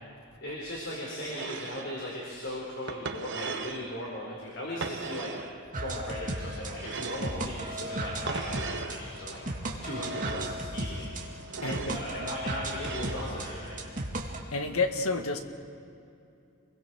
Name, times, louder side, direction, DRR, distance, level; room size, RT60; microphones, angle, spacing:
voice 1, 0.4-5.3 5.8-9.4 9.8-11.0 11.6-13.8, left 1 dB, 55° left, -4 dB, 4.6 m, -37 dB
sound 1, 1.3-1.9 2.9-3.9 4.8-5.5 6.8-7.4 8.3-9.0 9.9-10.6 11.5-12.0 12.8-13.3, right 4 dB, 55° right, 1.2 m, -37 dB
sound 2, 5.7-14.4, right 1 dB, 40° right, 2.3 m, -36 dB
sound 3, 7.8-14.1, equal, 25° left, 7.6 m, -49 dB
voice 2, 14.5-15.4, left 3 dB, 80° left, 5 dB, 1.7 m, -29 dB
29.0 x 22.5 x 4.6 m, 2.6 s
head